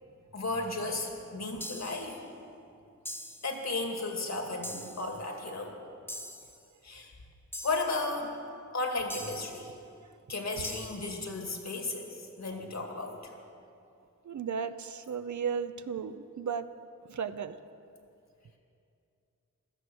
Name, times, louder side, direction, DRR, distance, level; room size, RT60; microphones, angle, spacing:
voice 1, 0.3-2.2 3.4-5.8 6.8-7.1 7.6-8.4 8.7-9.7 10.3-13.3, left 3 dB, 60° left, 2 dB, 2.2 m, -34 dB
sound 1, 1.6-2.1 3.1-3.6 4.6-5.1 6.1-6.6 7.5-8.0 9.1-9.6 10.6-11.1, equal, 5° left, 1.3 m, -42 dB
voice 2, 14.2-16.7 17.1-17.6, right 6 dB, 70° right, 11 dB, 0.7 m, -35 dB
16.5 x 13.0 x 6.2 m, 2.5 s
wide cardioid pair, 115°, 31 cm